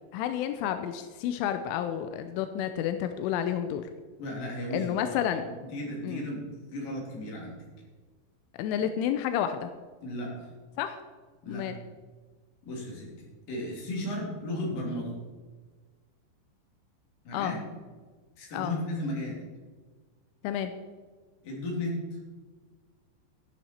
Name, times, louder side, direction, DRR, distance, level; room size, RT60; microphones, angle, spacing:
voice 1, 0.1-3.8 4.7-5.5 6.0-6.2 8.6-9.7 10.8-11.0 11.5-11.8 17.3-17.5 18.5-18.7 20.4-20.7, left 10 dB, 90° left, 8 dB, 3.1 m, -30 dB
voice 2, 4.2-5.1 5.5-7.5 10.0-10.5 11.4-11.7 12.6-15.1 17.2-17.6 18.4-19.4 21.4-22.0, left 1 dB, 50° left, -2 dB, 4.4 m, -35 dB
14.0 x 9.2 x 4.4 m, 1.4 s
omnidirectional pair, 5.5 m